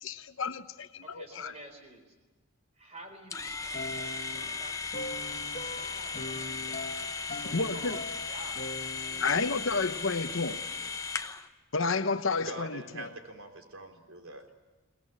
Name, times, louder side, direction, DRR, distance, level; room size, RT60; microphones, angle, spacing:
voice 1, 0.0-1.5 7.5-8.0 9.2-10.6 11.7-13.1, left 4 dB, 60° left, 1.0 m, -31 dB
voice 2, 1.0-2.1 2.7-8.0 8.3-11.0, right 1 dB, 30° right, 4.1 m, -51 dB
sound 1, 3.3-11.5, left 5 dB, 15° left, 0.8 m, -37 dB
sound 2, 3.7-10.1, left 1 dB, 40° left, 1.7 m, -42 dB
voice 3, 12.5-14.5, right 2 dB, 65° right, 3.7 m, -43 dB
23.0 x 20.0 x 9.9 m
head